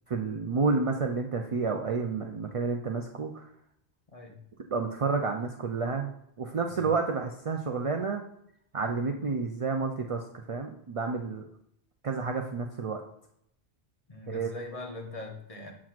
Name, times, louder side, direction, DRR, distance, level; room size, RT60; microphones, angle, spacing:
voice 1, 0.1-3.5 4.7-6.1 6.4-8.2 8.7-11.4 12.0-13.0 14.3-14.5, right 4 dB, 50° right, 3 dB, 0.4 m, -30 dB
voice 2, 14.1-15.7, left 2 dB, 35° left, 2 dB, 0.9 m, -41 dB
7.4 x 5.9 x 2.4 m, 0.75 s
omnidirectional pair, 1.1 m